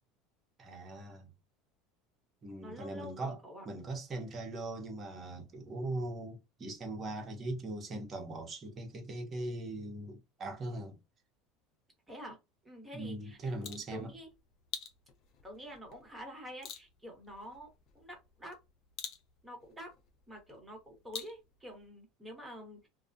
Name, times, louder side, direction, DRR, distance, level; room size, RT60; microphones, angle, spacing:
voice 1, 0.6-1.3 2.4-3.4 3.6-11.0 12.9-14.1, right 2 dB, 30° right, 0.9 m, -40 dB
voice 2, 2.6-3.6 12.1-12.4 12.6-14.3 15.4-18.6 19.4-19.9 20.3-22.9, equal, 10° right, 1.2 m, -48 dB
sound 1, 13.3-21.9, left 7 dB, 55° left, 0.6 m, -49 dB
2.3 x 2.2 x 2.6 m
supercardioid pair, 110°, 0 cm